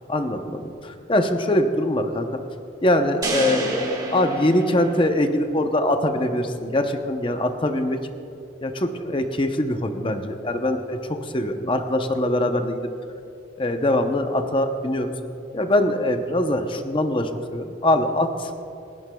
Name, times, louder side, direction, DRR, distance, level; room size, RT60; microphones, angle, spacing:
voice 1, 0.1-2.4 2.8-8.1 8.6-12.9 13.6-15.1 15.5-18.5, left 1 dB, 25° left, 6 dB, 0.7 m, -23 dB
sound 1, 3.2-5.5, right 2 dB, 20° right, 1.4 m, -29 dB
29.5 x 11.0 x 2.3 m, 2.8 s
head